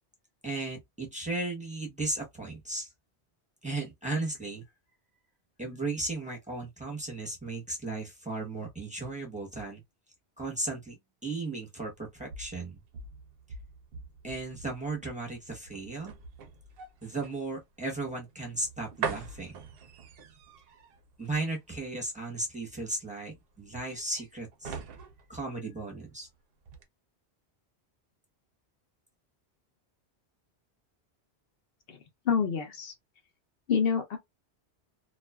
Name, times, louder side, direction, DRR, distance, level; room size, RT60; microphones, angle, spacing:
voice 1, 0.4-2.9 3.6-4.6 5.6-9.8 10.4-10.9 11.2-12.8 14.2-16.1 17.0-19.6 21.2-24.7 25.3-26.3, right 2 dB, 5° right, 0.8 m, -35 dB
sound 1, 11.9-26.3 26.6-26.8, right 5 dB, 65° right, 0.7 m, -43 dB
voice 2, 32.3-32.9 33.7-34.2, left 6 dB, 65° left, 0.8 m, -27 dB
2.4 x 2.3 x 2.2 m
omnidirectional pair, 1.1 m